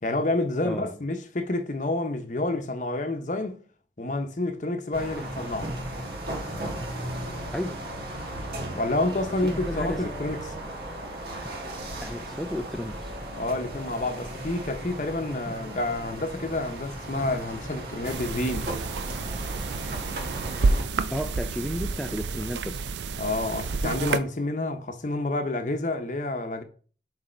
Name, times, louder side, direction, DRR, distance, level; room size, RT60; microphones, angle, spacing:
voice 1, 0.0-3.6 4.0-5.7 8.7-10.5 13.4-18.7 23.2-26.6, left 2 dB, 45° left, 0.8 m, -29 dB
sound 1, 4.9-20.8, right 1 dB, 60° right, 1.7 m, -36 dB
voice 2, 9.4-10.0 12.0-13.1 21.1-22.9, equal, ahead, 0.3 m, -33 dB
sound 2, 18.0-24.2, right 3 dB, 85° right, 0.5 m, -29 dB
6.4 x 4.2 x 4.3 m
head